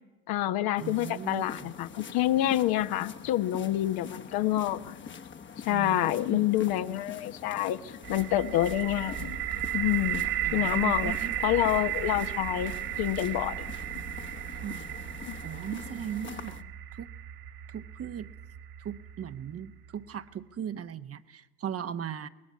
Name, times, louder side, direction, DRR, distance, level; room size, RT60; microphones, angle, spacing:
voice 1, 0.3-5.1 5.6-9.4 9.7-11.1 11.4-12.7 13.0-13.6 15.3-15.4, left 13 dB, 55° left, 10 dB, 1.3 m, -28 dB
sound 1, 0.8-16.6, left 6 dB, 25° left, 1.3 m, -45 dB
voice 2, 0.8-1.7 5.7-6.5 10.4-11.3 14.6-15.0 15.4-16.6 16.9-17.1 17.7-18.3 18.8-22.3, right 9 dB, 35° right, 11 dB, 1.2 m, -38 dB
sound 2, 8.0-19.9, right 12 dB, 50° right, 1.8 m, -35 dB
24.5 x 19.5 x 9.6 m, 1.1 s
hypercardioid pair, 75°, 43 cm